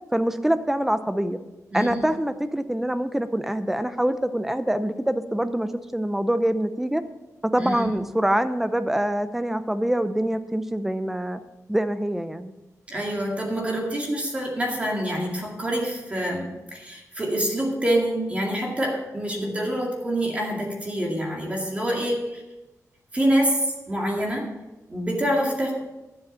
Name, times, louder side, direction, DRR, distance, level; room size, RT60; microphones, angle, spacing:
voice 1, 0.1-1.4 1.7-7.0 7.4-11.4 11.7-12.5, right 1 dB, 5° right, 11 dB, 0.5 m, -25 dB
voice 2, 7.6-7.9 12.9-22.4 23.1-24.5 24.9-25.7, right 1 dB, 20° right, -1 dB, 2.2 m, -26 dB
11.0 x 7.9 x 5.6 m, 1.1 s
wide cardioid pair, 180°, 6 cm